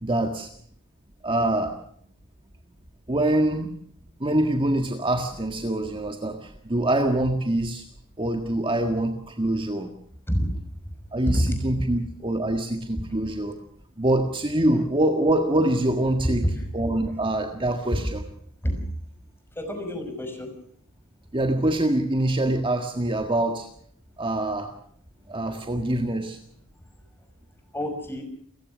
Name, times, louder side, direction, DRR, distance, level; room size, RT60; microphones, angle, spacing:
voice 1, 0.0-0.5 1.2-1.8 3.1-3.7 4.2-7.9 8.2-9.9 11.1-13.6 14.0-16.5 16.7-18.2 21.3-23.7 24.2-24.7 25.3-26.4, right 1 dB, 25° right, 5 dB, 1.7 m, -24 dB
voice 2, 19.6-20.5 25.4-25.5 27.7-28.2, equal, 10° left, 5 dB, 5.9 m, -28 dB
29.0 x 16.0 x 6.3 m, 0.65 s
head